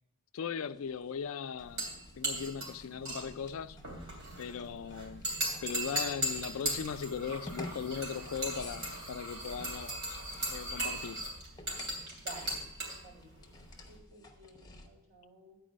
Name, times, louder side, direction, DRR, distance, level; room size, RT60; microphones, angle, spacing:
voice 1, 0.3-3.8 4.4-5.2 5.6-10.2 10.5-11.2, left 6 dB, 70° left, 0.4 m, -39 dB
sound 1, 0.6-14.9, left 2 dB, 20° left, 0.8 m, -52 dB
sound 2, 1.6-14.0, right 1 dB, 65° right, 3.0 m, -38 dB
voice 2, 12.2-12.6 12.9-13.5 13.9-15.6, right 4 dB, 50° right, 4.3 m, -52 dB
9.4 x 4.7 x 6.2 m
head